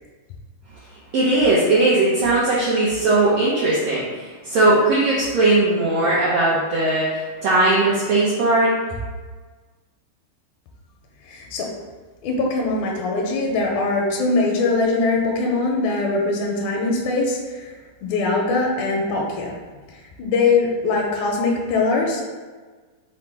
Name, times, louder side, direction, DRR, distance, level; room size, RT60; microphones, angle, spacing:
voice 1, 1.1-8.7, right 2 dB, 85° right, -7 dB, 1.4 m, -19 dB
voice 2, 11.2-11.7 12.2-17.7 18.0-19.5 19.9-22.2, left 3 dB, 80° left, -1 dB, 1.8 m, -22 dB
5.6 x 2.1 x 4.3 m, 1.4 s
omnidirectional pair, 3.8 m